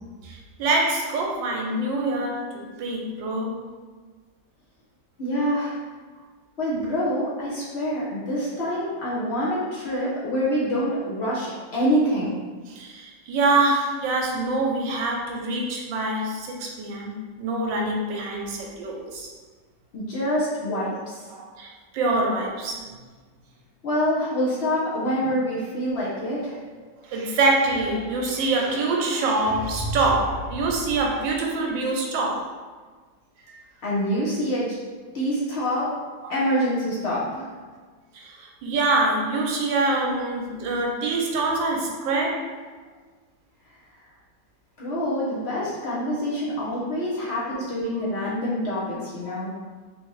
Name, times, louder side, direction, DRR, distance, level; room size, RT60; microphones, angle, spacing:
voice 1, 0.2-3.6 12.7-19.3 20.8-21.0 21.3-22.9 27.0-32.5 33.5-33.6 36.2-36.3 38.1-42.5 46.1-46.2 49.2-49.4, right 2 dB, 80° right, 0 dB, 1.4 m, -25 dB
voice 2, 5.2-5.8 6.6-12.3 19.9-21.2 23.8-26.6 33.8-34.8 35.1-35.9 36.3-37.6 44.8-49.5, equal, 50° left, -7 dB, 0.7 m, -26 dB
3.7 x 2.8 x 3.0 m, 1.4 s
omnidirectional pair, 2.0 m